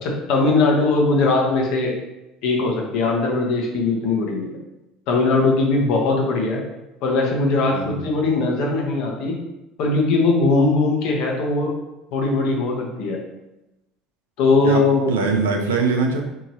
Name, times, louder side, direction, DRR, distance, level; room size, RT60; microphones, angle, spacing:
voice 1, 0.0-1.9 2.4-4.5 5.1-6.6 7.0-9.4 9.8-11.7 12.1-13.2 14.4-15.1, left 3 dB, 60° left, 0 dB, 0.9 m, -20 dB
voice 2, 14.6-16.2, right 4 dB, 80° right, 3 dB, 0.5 m, -22 dB
4.6 x 2.8 x 2.6 m, 0.95 s
figure-of-eight pair, 65°, 0 cm